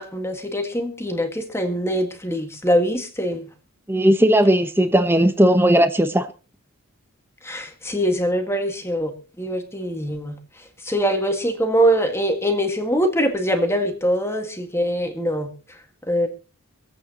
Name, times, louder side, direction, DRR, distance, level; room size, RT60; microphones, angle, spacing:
voice 1, 0.0-3.5 7.4-10.4 10.9-15.5 16.1-16.3, equal, 10° left, 1.9 m, -23 dB
voice 2, 3.9-6.3, right 1 dB, 10° right, 1.0 m, -17 dB
26.0 x 8.6 x 3.0 m
head